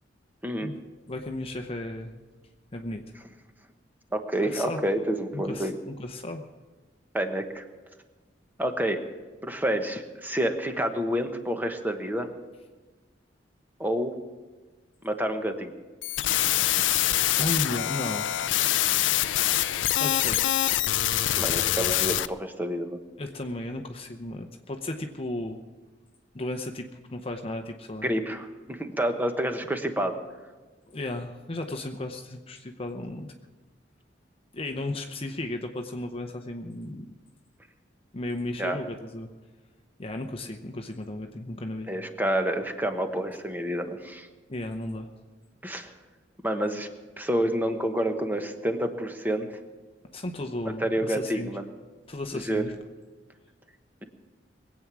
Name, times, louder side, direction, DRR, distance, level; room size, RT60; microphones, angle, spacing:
voice 1, 1.1-2.1 2.7-3.0 4.4-4.8 5.3-6.4 16.1-16.4 17.4-18.3 20.0-20.4 23.2-25.6 26.3-28.1 30.9-33.3 34.5-37.1 38.1-39.3 40.0-41.9 44.5-45.1 50.1-51.5 52.1-52.7, left 1 dB, 30° left, 4 dB, 0.8 m, -34 dB
voice 2, 4.1-5.8 7.1-7.6 8.6-9.0 9.4-12.3 13.8-14.1 15.0-15.8 21.4-23.0 28.0-30.2 38.6-38.8 41.9-44.3 45.6-45.9 46.4-46.9 47.2-49.5 50.6-51.6 52.3-52.6, right 1 dB, 10° right, 6 dB, 1.1 m, -28 dB
sound 1, 16.0-22.3, left 13 dB, 90° left, 0.5 m, -25 dB
22.0 x 8.6 x 6.1 m, 1.3 s
head